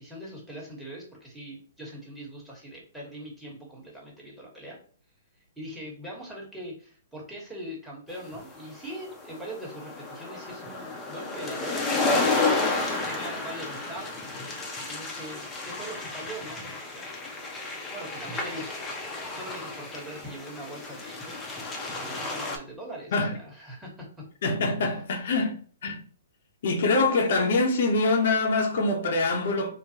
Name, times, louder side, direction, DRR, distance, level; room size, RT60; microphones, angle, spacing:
voice 1, 0.0-4.8 5.6-12.5 13.0-17.1 17.9-18.9 19.3-21.4 21.9-24.2, right 1 dB, 5° right, 1.2 m, -41 dB
sound 1, 8.3-22.6, left 3 dB, 15° left, 0.6 m, -31 dB
voice 2, 24.4-26.0 26.6-29.7, left 3 dB, 60° left, 0.7 m, -24 dB
3.8 x 2.1 x 2.8 m
hypercardioid pair, 130°, 0 cm